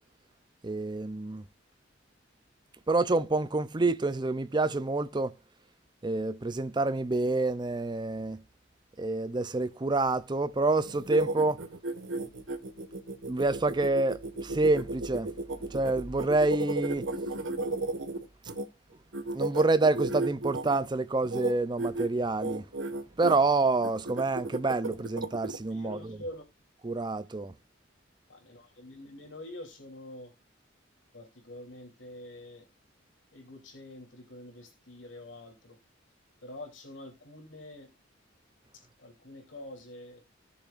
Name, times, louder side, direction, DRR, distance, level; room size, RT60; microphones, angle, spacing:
voice 1, 0.6-1.4 2.9-5.3 6.0-8.4 9.0-11.6 13.3-15.3 15.6-17.1 19.3-22.7 23.2-26.2 26.8-27.5, right 3 dB, 25° right, 0.5 m, -27 dB
sound 1, 10.8-18.6 19.1-20.8 21.2-21.5 21.8-22.1 22.4-23.4 23.8-25.6, right 2 dB, 80° right, 1.6 m, -34 dB
voice 2, 25.7-26.4 28.3-30.3 31.1-32.7 33.3-35.8 36.4-37.9 38.7-40.2, left 1 dB, 75° left, 3.1 m, -46 dB
18.5 x 7.0 x 2.5 m
head